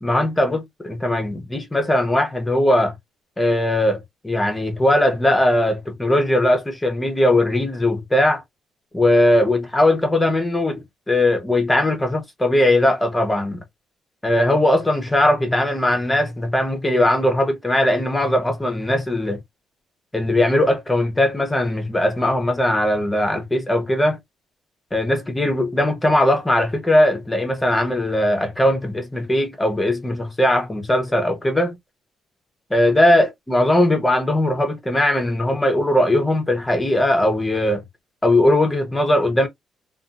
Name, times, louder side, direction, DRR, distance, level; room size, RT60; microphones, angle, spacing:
voice 1, 0.0-2.9 3.4-8.4 8.9-13.6 14.2-19.4 20.1-24.2 24.9-31.8 32.7-37.8 38.2-39.5, left 1 dB, 15° left, 0.9 m, -19 dB
2.6 x 2.5 x 2.5 m
cardioid pair, 90°, 0 cm